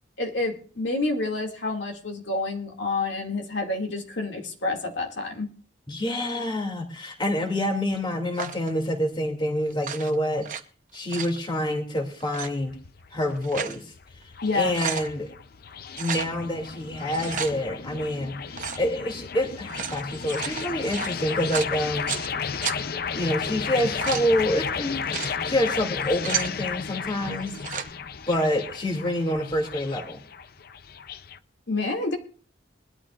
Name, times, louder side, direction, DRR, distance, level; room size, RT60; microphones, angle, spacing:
voice 1, 0.2-5.5 14.4-14.8 31.7-32.2, left 3 dB, 70° left, 2 dB, 2.3 m, -28 dB
voice 2, 5.9-10.5 10.9-12.8 13.1-13.9 14.5-15.3 16.0-22.1 23.1-27.5 28.3-30.2, left 1 dB, 25° left, 2 dB, 2.6 m, -27 dB
sound 1, 8.3-8.7 9.7-10.6 10.9-11.4 12.2-12.5 13.2-13.8 14.2-14.3 14.6-15.1 15.9-16.3 17.0-17.5 18.5-18.8 19.6-22.3 22.6-22.8 23.6-24.3 24.9-25.3 25.9-26.5 27.4-27.9, right 8 dB, 45° right, 0.9 m, -33 dB
sound 2, 12.6-31.4, left 6 dB, 50° left, 0.5 m, -34 dB
22.0 x 12.5 x 2.5 m, 0.38 s
head